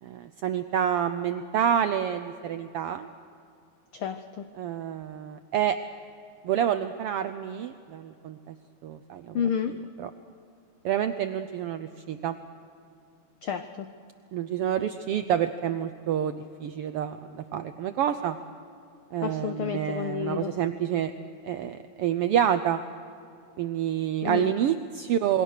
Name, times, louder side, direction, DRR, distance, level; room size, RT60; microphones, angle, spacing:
voice 1, 0.0-3.1 4.6-5.8 6.4-8.6 8.8-9.4 10.0-10.1 10.8-12.4 14.3-18.4 19.1-21.1 21.4-22.8 23.6-25.4, right 9 dB, 80° right, 10 dB, 1.3 m, -28 dB
voice 2, 3.9-4.5 9.3-9.8 13.4-13.9 19.2-20.5 24.2-24.5, left 8 dB, 80° left, 9 dB, 1.2 m, -30 dB
27.5 x 22.0 x 6.6 m, 2.6 s
omnidirectional pair, 3.4 m